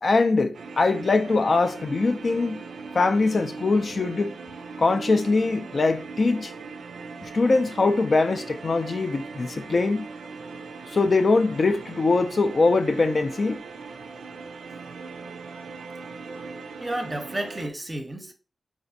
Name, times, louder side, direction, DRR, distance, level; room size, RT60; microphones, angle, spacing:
voice 1, 0.0-2.6 2.9-4.3 4.8-6.5 7.2-10.1 10.9-13.6, left 3 dB, 50° left, 0.3 m, -22 dB
sound 1, 0.5-17.7, right 4 dB, 90° right, 0.4 m, -39 dB
voice 2, 16.8-18.3, right 1 dB, 20° right, 0.6 m, -32 dB
4.0 x 2.5 x 2.6 m
wide cardioid pair, 95°, 0 cm